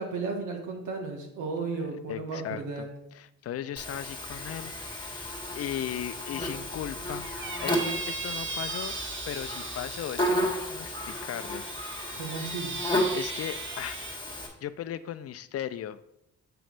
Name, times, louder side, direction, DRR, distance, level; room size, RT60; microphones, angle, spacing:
voice 1, 0.0-2.9 12.2-12.7, right 4 dB, 85° right, 2 dB, 1.6 m, -34 dB
voice 2, 2.1-7.3 7.6-9.0 9.3-11.6 12.1-12.4 13.1-14.0 14.6-16.0, left 11 dB, 55° left, 13 dB, 0.5 m, -37 dB
Buzz, 3.8-14.5, equal, 15° left, 1.8 m, -33 dB
Squeak, 7.2-10.3 11.1-14.2, right 4 dB, 40° right, 0.9 m, -38 dB
7.7 x 3.1 x 6.0 m, 0.81 s
cardioid pair, 90°, 30 cm